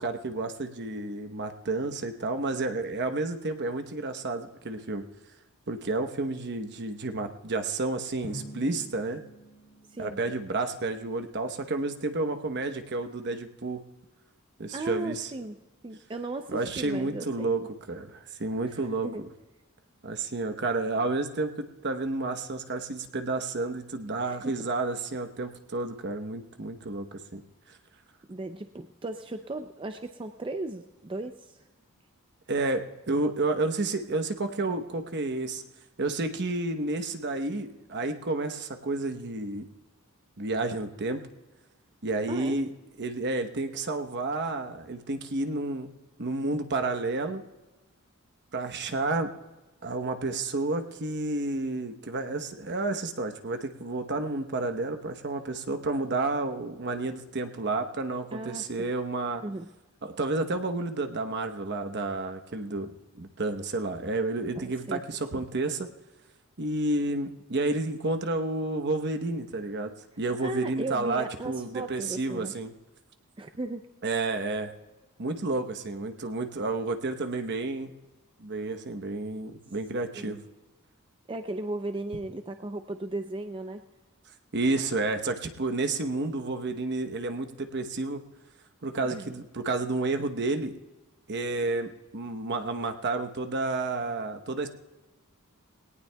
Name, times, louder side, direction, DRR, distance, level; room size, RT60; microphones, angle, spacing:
voice 1, 0.0-5.0 5.7-9.2 10.0-13.8 14.6-15.3 16.5-17.6 17.9-19.1 20.0-27.4 32.5-35.6 36.0-39.6 40.4-41.2 42.0-42.7 43.0-45.9 46.2-47.4 48.5-49.3 49.8-59.4 60.0-65.9 66.6-69.9 70.2-72.7 74.0-74.7 75.2-77.9 78.4-80.4 84.5-88.2 88.8-90.7 91.3-94.7, right 2 dB, 50° right, 7 dB, 1.0 m, -30 dB
Drum, 8.2-10.9, equal, 40° left, 3.8 m, -46 dB
voice 2, 9.9-10.2 14.7-15.6 15.8-17.5 18.7-19.2 24.2-24.6 28.3-31.6 42.3-42.6 58.3-58.9 59.4-59.7 64.6-65.0 65.3-65.4 70.4-72.5 73.4-73.9 80.1-80.4 81.3-83.8 89.0-89.3, right 2 dB, 25° right, 7 dB, 0.5 m, -36 dB
20.5 x 18.0 x 2.3 m, 1.1 s
head